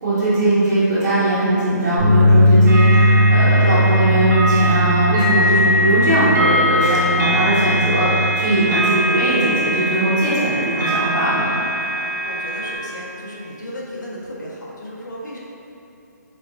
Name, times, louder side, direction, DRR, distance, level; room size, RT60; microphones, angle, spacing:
voice 1, 0.0-11.5, right 1 dB, 60° right, -14 dB, 1.2 m, -19 dB
sound 1, 2.0-8.2, equal, 25° right, 1.2 m, -17 dB
sound 2, 2.7-12.8, equal, 80° right, 1.0 m, -22 dB
voice 2, 12.0-15.4, equal, 85° left, -4 dB, 0.9 m, -34 dB
4.3 x 3.5 x 2.4 m, 2.7 s
hypercardioid pair, 170°, 10 cm